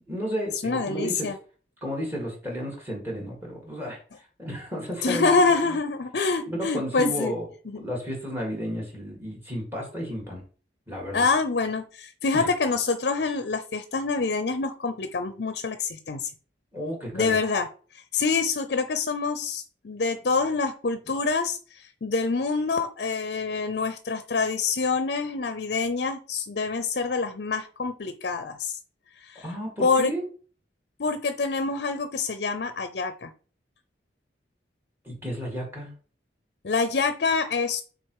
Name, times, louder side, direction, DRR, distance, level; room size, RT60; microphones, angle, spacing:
voice 1, 0.1-1.3 1.8-4.0 4.4-5.4 6.5-7.5 7.7-10.4 10.9-11.2 12.3-12.5 16.7-17.4 29.4-30.3 35.0-35.9, equal, 15° right, -1 dB, 2.4 m, -32 dB
voice 2, 0.6-1.4 5.0-7.3 7.7-7.8 11.1-16.3 17.1-17.7 17.9-28.8 29.2-29.5 29.8-30.1 31.0-33.3 36.6-37.8, left 4 dB, 60° left, 10 dB, 0.6 m, -26 dB
6.1 x 3.9 x 4.8 m, 0.40 s
head